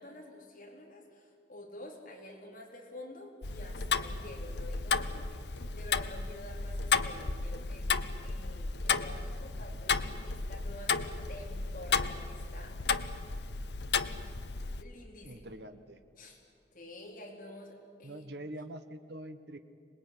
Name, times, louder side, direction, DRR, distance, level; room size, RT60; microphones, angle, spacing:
voice 1, 0.0-11.0 11.3-12.8 14.8-15.4 16.2-16.4 16.7-18.3, left 1 dB, 50° left, 0 dB, 4.2 m, -49 dB
Tick-tock, 3.4-14.8, left 5 dB, 70° left, 0.9 m, -33 dB
voice 2, 15.2-16.0 18.0-19.6, right 1 dB, 65° right, 8 dB, 1.4 m, -44 dB
25.5 x 20.0 x 9.9 m, 2.4 s
head